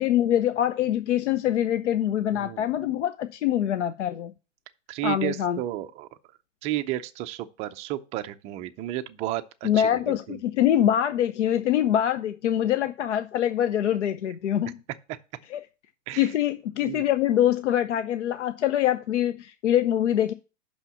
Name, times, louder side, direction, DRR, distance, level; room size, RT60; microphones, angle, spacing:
voice 1, 0.0-4.3 5.0-5.6 9.6-14.8 15.5-15.6 16.2-20.3, left 11 dB, 70° left, 0.7 m, -24 dB
voice 2, 2.3-2.7 4.9-6.1 6.6-10.4 16.1-16.3 16.8-17.1, right 15 dB, 20° right, 0.4 m, -32 dB
5.7 x 5.6 x 6.8 m
hypercardioid pair, 125°, 37 cm